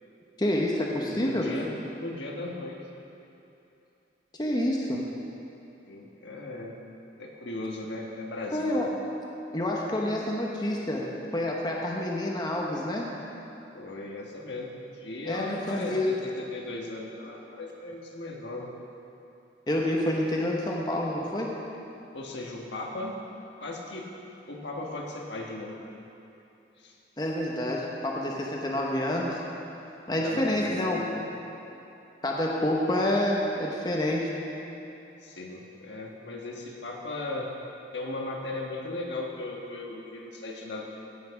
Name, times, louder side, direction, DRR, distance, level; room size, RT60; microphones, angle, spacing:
voice 1, 0.4-1.5 4.4-5.1 8.5-8.9 9.5-13.1 15.2-16.1 19.7-21.5 27.2-29.4 30.1-31.0 32.2-34.3, left 1 dB, 25° left, -2 dB, 0.9 m, -28 dB
voice 2, 1.1-1.7 2.0-2.8 5.8-6.8 7.2-8.9 13.7-18.7 22.1-23.2 23.6-24.1 24.5-25.8 26.8-27.0 30.2-30.7 31.1-31.3 35.2-37.5 37.9-40.8, left 2 dB, 80° left, -1 dB, 1.4 m, -37 dB
16.0 x 6.0 x 5.8 m, 2.9 s
head